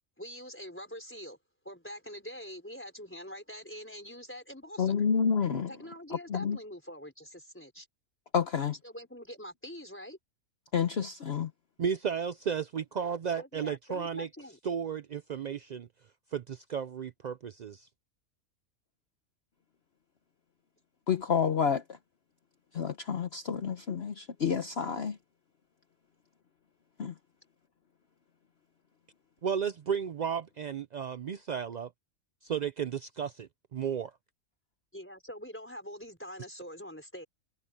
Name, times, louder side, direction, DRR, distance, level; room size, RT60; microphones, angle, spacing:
voice 1, 0.2-1.4 1.6-4.9 5.7-7.9 8.8-10.2 13.4-14.6 34.9-37.3, equal, 10° left, 4.4 m, -44 dB
voice 2, 4.8-5.7 6.3-6.6 8.3-8.7 10.7-11.5 21.1-21.8 22.7-25.2 27.0-27.1, left 7 dB, 50° left, 1.1 m, -29 dB
voice 3, 11.8-14.3 14.6-15.9 16.3-17.9 29.4-31.9 32.4-34.1, right 7 dB, 70° right, 0.4 m, -33 dB
omnidirectional pair, 1.4 m